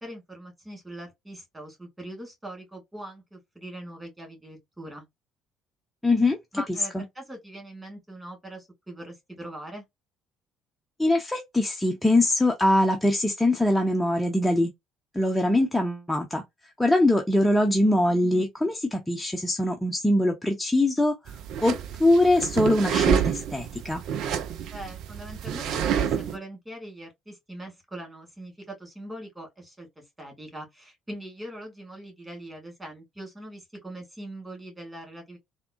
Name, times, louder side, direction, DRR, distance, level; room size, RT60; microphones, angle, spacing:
voice 1, 0.0-5.0 6.5-9.8 24.7-35.4, right 1 dB, 15° right, 2.3 m, -42 dB
voice 2, 6.0-6.4 6.9-7.0 11.0-14.7 15.1-16.4 16.8-21.3 21.6-24.0, left 1 dB, 5° left, 0.7 m, -23 dB
sound 1, 21.3-26.4, right 8 dB, 55° right, 0.4 m, -28 dB
3.5 x 2.2 x 2.4 m
figure-of-eight pair, 50°, 0 cm